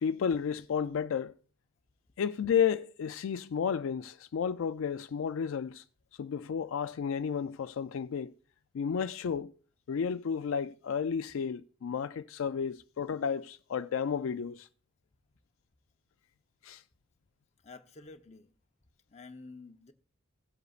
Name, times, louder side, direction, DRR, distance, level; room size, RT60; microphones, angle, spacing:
voice 1, 0.0-1.3 2.2-5.8 6.1-8.3 8.7-9.5 9.9-14.7 16.6-16.8, left 7 dB, 70° left, 0.3 m, -32 dB
voice 2, 17.6-18.5 19.1-19.9, left 3 dB, 30° left, 0.8 m, -50 dB
17.0 x 8.0 x 2.4 m
head